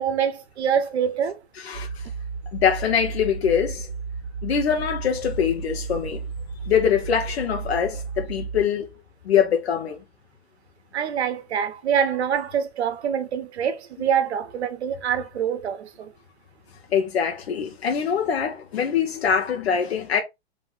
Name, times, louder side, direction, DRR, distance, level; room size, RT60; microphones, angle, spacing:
voice 1, 0.0-1.4 10.9-16.1, right 8 dB, 70° right, 1.0 m, -25 dB
voice 2, 1.6-2.0 2.5-3.9 4.4-6.2 6.7-8.9 9.2-10.0 16.9-20.2, left 7 dB, 65° left, 1.2 m, -23 dB
sound 1, 1.7-8.6, right 5 dB, 5° left, 1.6 m, -33 dB
3.6 x 3.1 x 3.8 m
hypercardioid pair, 155°, 34 cm